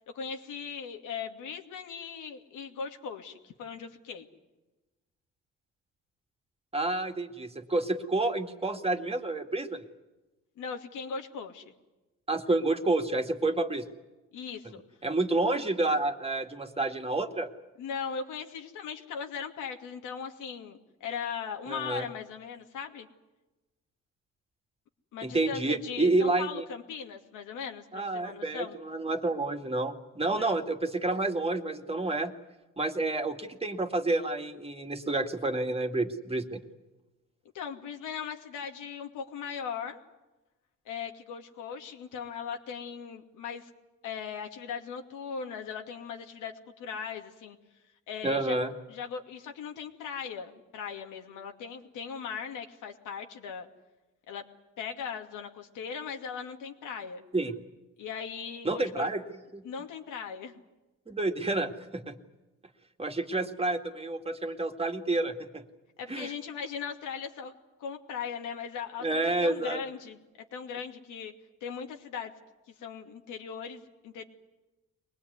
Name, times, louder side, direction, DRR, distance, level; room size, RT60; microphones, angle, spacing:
voice 1, 0.1-4.3 10.6-11.7 14.3-14.8 17.8-23.1 25.1-28.8 30.3-30.6 37.5-40.0 40.9-43.7 44.0-47.6 48.1-48.6 48.9-53.7 54.3-54.4 54.8-57.2 58.0-59.1 59.6-60.6 66.0-67.5 67.8-70.2 70.5-71.3 71.6-72.3 72.8-74.3, left 6 dB, 85° left, 4 dB, 2.5 m, -39 dB
voice 2, 6.7-9.8 12.3-13.9 15.0-17.5 21.7-22.1 25.2-26.6 27.9-32.3 32.8-36.6 48.2-48.7 57.3-57.5 58.6-59.6 61.1-62.1 63.0-65.6 66.1-66.3 69.0-69.8, right 2 dB, 20° right, 5 dB, 2.2 m, -29 dB
23.5 x 19.5 x 9.7 m, 1.1 s
cardioid pair, 90°, 30 cm